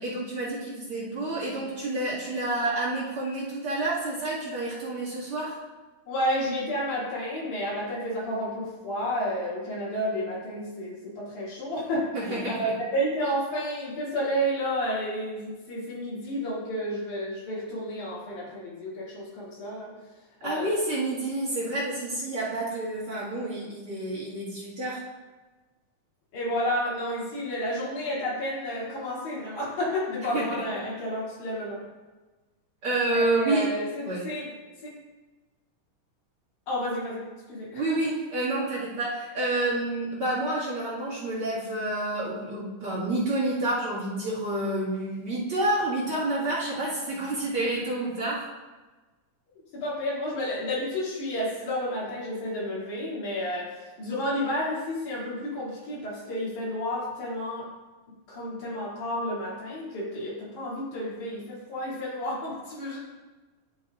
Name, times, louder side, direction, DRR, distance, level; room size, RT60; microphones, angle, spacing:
voice 1, 0.0-5.6 12.1-12.7 20.4-25.0 30.2-30.4 32.8-33.7 34.0-34.2 37.7-48.4, right 2 dB, 45° right, -6 dB, 2.6 m, -29 dB
voice 2, 6.1-19.9 20.4-20.7 26.3-31.8 33.0-34.5 34.8-34.9 36.7-38.0 49.7-57.7 58.3-63.0, equal, 65° left, -8 dB, 4.0 m, -31 dB
11.0 x 7.1 x 2.5 m, 1.2 s
omnidirectional pair, 3.7 m